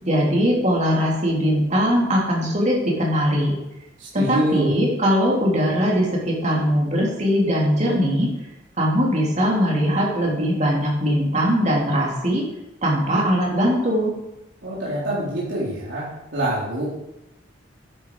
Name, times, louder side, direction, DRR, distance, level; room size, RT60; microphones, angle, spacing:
voice 1, 0.0-3.6 4.1-8.3 8.8-12.4 12.8-14.1, equal, 40° right, -3 dB, 3.3 m, -20 dB
voice 2, 4.0-4.7 14.6-16.8, right 1 dB, 70° right, -7 dB, 3.8 m, -25 dB
11.0 x 9.2 x 4.9 m, 0.90 s
head